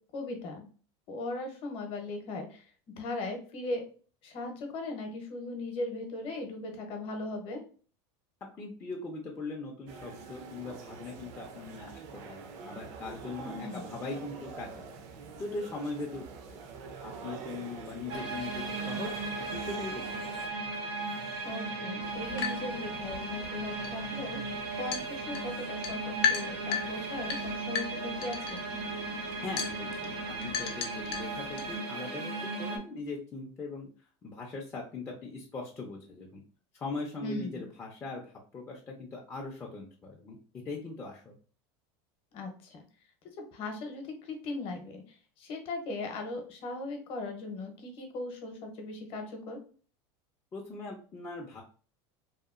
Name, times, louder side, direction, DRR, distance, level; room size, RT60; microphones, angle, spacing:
voice 1, 0.1-0.7 1.1-2.7 3.0-3.8 4.2-7.6 13.4-13.9 21.4-24.4 24.7-28.6 37.2-37.7 42.3-42.8 43.5-49.6, left 2 dB, 40° left, 4 dB, 0.8 m, -38 dB
voice 2, 8.6-15.0 15.4-16.6 17.0-19.2 19.5-20.3 29.4-33.9 34.2-36.4 36.7-41.4 50.5-51.6, left 3 dB, 15° left, -2 dB, 0.4 m, -40 dB
sound 1, 9.9-20.5, right 5 dB, 55° right, 0.5 m, -45 dB
sound 2, 18.1-32.8, right 3 dB, 75° right, 0.8 m, -36 dB
sound 3, 22.0-31.7, left 7 dB, 75° left, 0.6 m, -37 dB
2.8 x 2.3 x 2.4 m, 0.40 s
supercardioid pair, 145°, 14 cm